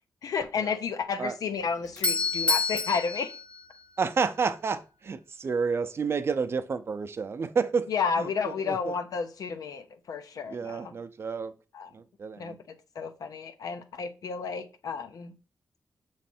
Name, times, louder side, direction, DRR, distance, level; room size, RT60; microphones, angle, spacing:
voice 1, 0.2-3.3 7.9-10.9 11.7-11.9 12.4-15.3, left 5 dB, 90° left, 0.7 m, -32 dB
Doorbell, 1.6-4.4, left 3 dB, 20° left, 0.7 m, -29 dB
voice 2, 4.0-7.9 8.2-8.9 10.5-11.5 11.9-12.5, right 5 dB, 40° right, 0.5 m, -30 dB
7.0 x 3.2 x 4.3 m
wide cardioid pair, 145°, 6 cm